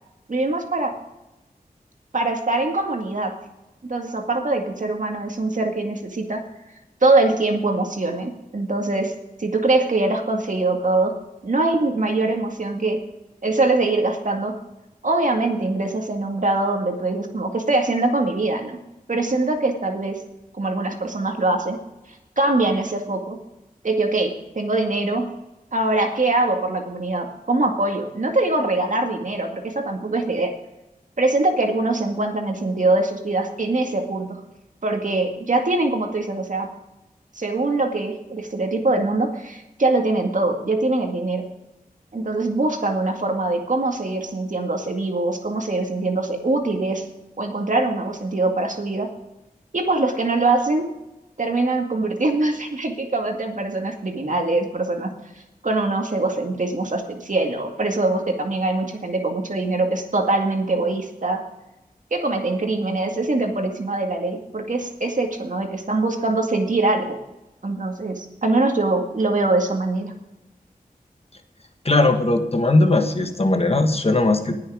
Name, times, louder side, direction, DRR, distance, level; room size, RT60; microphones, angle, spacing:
voice 1, 0.3-0.9 2.1-3.3 3.9-6.4 7.0-9.1 9.4-11.1 11.4-13.0 13.4-14.6 15.0-18.8 19.1-20.2 20.5-21.8 22.4-23.4 23.8-25.3 25.7-30.5 31.2-34.4 34.8-36.7 37.4-41.4 42.1-47.0 47.4-49.1 49.7-50.9 51.4-55.1 55.6-61.4 62.1-67.2 67.6-70.1, right 2 dB, 55° right, 3 dB, 2.1 m, -23 dB
voice 2, 71.8-74.6, left 2 dB, 40° left, 6 dB, 1.4 m, -19 dB
19.5 x 6.8 x 5.0 m, 0.95 s
wide cardioid pair, 75°, 15 cm